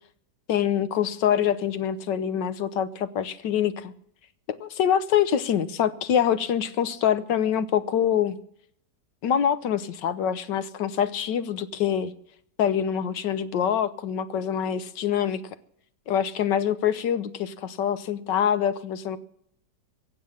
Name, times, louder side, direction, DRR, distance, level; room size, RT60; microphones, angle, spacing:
voice 1, 0.5-3.9 4.5-8.4 9.2-12.1 12.6-15.4 16.1-19.2, left 9 dB, 90° left, 1.5 m, -25 dB
23.0 x 8.1 x 7.1 m
omnidirectional pair, 1.9 m